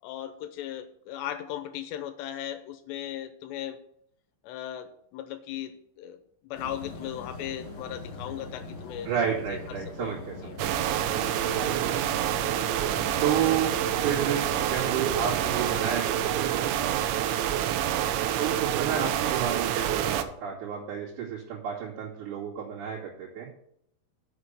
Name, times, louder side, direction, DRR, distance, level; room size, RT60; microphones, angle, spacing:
voice 1, 0.0-3.8 4.4-6.2 6.4-9.1 9.5-10.6 11.4-11.7 17.9-18.2, left 11 dB, 85° left, 9 dB, 2.7 m, -38 dB
sound 1, 6.5-15.9, left 3 dB, 35° left, 2.6 m, -42 dB
voice 2, 9.0-10.8 11.5-11.7 13.2-13.7 14.0-16.9 18.4-23.5, right 8 dB, 70° right, -8 dB, 4.6 m, -31 dB
sound 2, 10.6-20.2, right 11 dB, 90° right, 3.0 m, -27 dB
8.0 x 6.6 x 8.1 m, 0.71 s
omnidirectional pair, 5.3 m